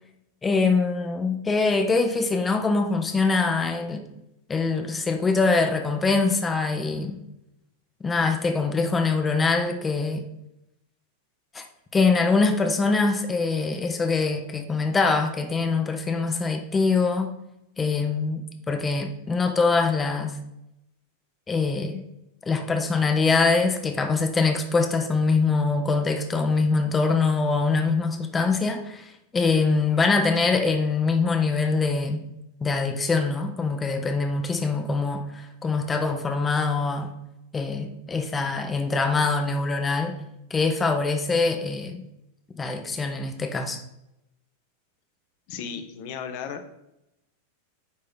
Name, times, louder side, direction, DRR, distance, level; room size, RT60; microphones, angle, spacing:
voice 1, 0.4-4.0 4.5-7.2 8.0-10.2 11.5-11.6 11.9-17.3 17.8-20.4 21.5-22.1 22.4-32.2 32.6-37.1 37.5-40.2 40.5-42.0 42.6-43.8, left 4 dB, 15° left, 5 dB, 0.7 m, -23 dB
voice 2, 45.5-46.7, left 7 dB, 45° left, 7 dB, 0.8 m, -35 dB
9.5 x 3.2 x 3.8 m, 0.86 s
figure-of-eight pair, 90°, 0 cm